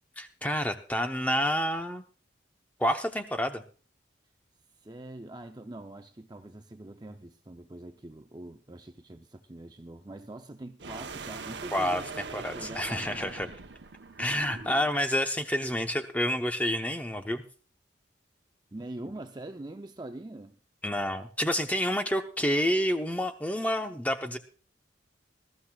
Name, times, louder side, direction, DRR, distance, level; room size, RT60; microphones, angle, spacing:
voice 1, 0.2-2.0 2.8-3.6 11.7-12.0 12.3-13.5 14.2-17.4 20.8-24.4, equal, 10° left, 0.9 m, -29 dB
voice 2, 4.8-12.1 12.4-13.5 18.7-20.6, right 1 dB, 20° right, 0.6 m, -44 dB
sound 1, 10.8-15.1, right 4 dB, 65° right, 0.9 m, -42 dB
21.0 x 13.5 x 2.4 m
head